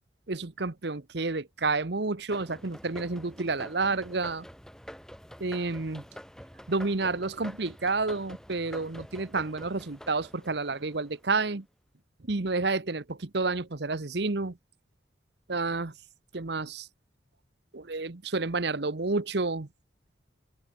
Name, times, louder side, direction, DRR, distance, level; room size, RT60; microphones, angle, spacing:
voice 1, 0.3-4.4 5.4-6.0 6.7-11.7 12.2-14.6 15.5-15.9 16.3-16.9 17.7-19.7, right 3 dB, 60° right, 1.0 m, -30 dB
sound 1, 2.3-11.4, equal, 5° left, 4.9 m, -47 dB
open air
head